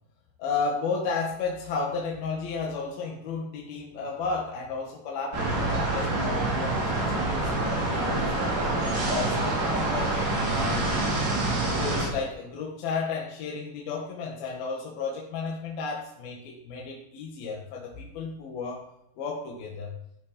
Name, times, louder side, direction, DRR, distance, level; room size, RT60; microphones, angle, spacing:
voice 1, 0.4-8.5 8.9-11.3 11.8-18.8 19.2-20.0, left 4 dB, 60° left, -2 dB, 3.1 m, -33 dB
sound 1, 5.3-12.1, right 2 dB, 75° right, 7.3 m, -26 dB
16.5 x 11.0 x 5.2 m, 0.81 s
omnidirectional pair, 5.7 m